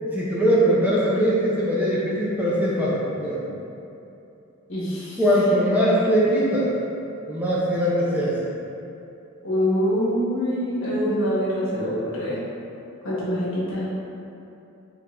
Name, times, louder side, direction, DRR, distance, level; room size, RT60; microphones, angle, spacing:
voice 1, 0.0-3.4 5.2-6.7 7.3-8.3, equal, 10° right, -8 dB, 0.6 m, -21 dB
voice 2, 4.7-5.2 9.4-12.4 13.0-13.9, equal, 75° left, -8 dB, 1.3 m, -25 dB
5.4 x 3.4 x 2.5 m, 2.8 s
head